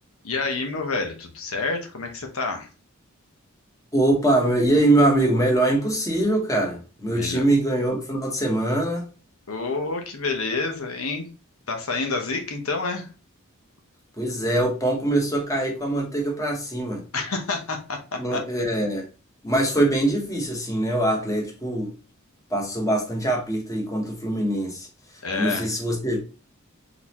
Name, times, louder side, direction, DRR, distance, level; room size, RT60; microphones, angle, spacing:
voice 1, 0.2-2.7 7.1-7.4 9.5-11.3 11.7-13.1 17.1-18.4 25.2-25.7, left 3 dB, 80° left, 1.0 m, -28 dB
voice 2, 3.9-9.1 14.2-17.0 18.2-19.0 19.4-21.9 22.5-24.9 25.3-26.2, right 1 dB, 15° left, 1.2 m, -23 dB
4.0 x 3.9 x 2.9 m
head